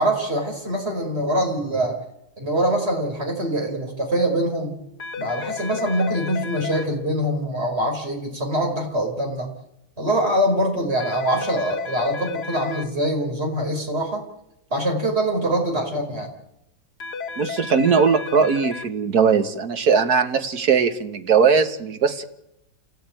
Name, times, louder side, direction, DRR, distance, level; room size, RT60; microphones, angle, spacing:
voice 1, 0.0-2.0 2.4-4.7 5.2-9.5 10.0-14.3 14.7-16.3, right 1 dB, 35° right, 2 dB, 5.3 m, -24 dB
sound 1, 5.0-6.8 11.0-12.8 17.0-18.8, left 5 dB, 60° left, 2.3 m, -32 dB
voice 2, 17.4-22.2, right 6 dB, 55° right, 7 dB, 2.0 m, -19 dB
28.0 x 17.0 x 9.2 m, 0.86 s
omnidirectional pair, 2.0 m